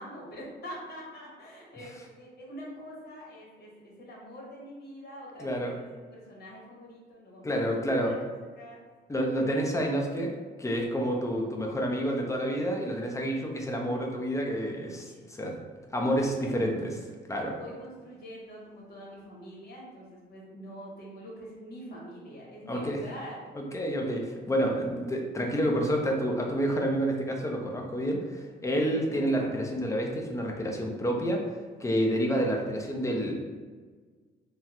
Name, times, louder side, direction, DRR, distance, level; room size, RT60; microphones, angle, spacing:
voice 1, 0.0-5.8 6.1-7.7 8.0-8.1 8.6-8.8 15.0-15.2 16.4-16.7 17.5-23.4, equal, 55° left, -3 dB, 1.2 m, -45 dB
voice 2, 5.4-5.7 7.4-8.2 9.1-15.6 15.9-17.0 17.3-17.6 22.7-23.0 23.5-33.4, equal, 15° left, 0 dB, 0.6 m, -29 dB
3.4 x 2.1 x 2.9 m, 1.5 s
cardioid pair, 90°, 20 cm